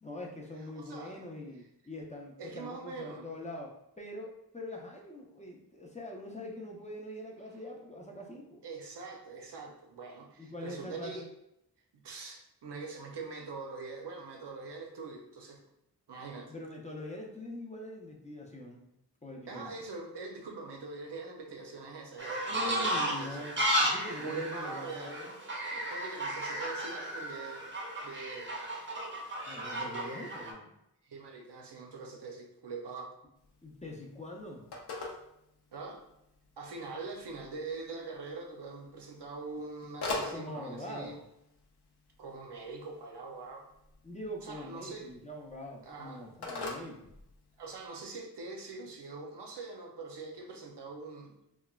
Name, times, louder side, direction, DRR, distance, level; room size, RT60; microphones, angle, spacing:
voice 1, 0.0-8.6 10.4-11.3 16.5-18.9 19.2-19.7 22.5-25.4 29.5-30.7 33.6-34.7 40.3-41.2 44.0-47.1, left 1 dB, 20° left, -1 dB, 0.4 m, -43 dB
voice 2, 0.8-1.2 2.4-3.3 8.6-11.3 11.9-15.6 16.1-16.5 19.5-23.5 24.2-25.2 25.7-27.7 28.0-28.5 29.7-30.2 31.0-33.1 35.7-36.0 36.6-41.2 42.2-43.7 44.4-45.1 45.8-46.2 46.7-46.9 47.6-51.3, right 3 dB, 90° right, 2 dB, 0.6 m, -43 dB
sound 1, 22.2-30.5, right 1 dB, 30° right, 0.5 m, -34 dB
Telephone, 33.4-47.9, left 3 dB, 70° left, 0.6 m, -45 dB
3.1 x 2.1 x 2.2 m, 0.82 s
wide cardioid pair, 75°, 40 cm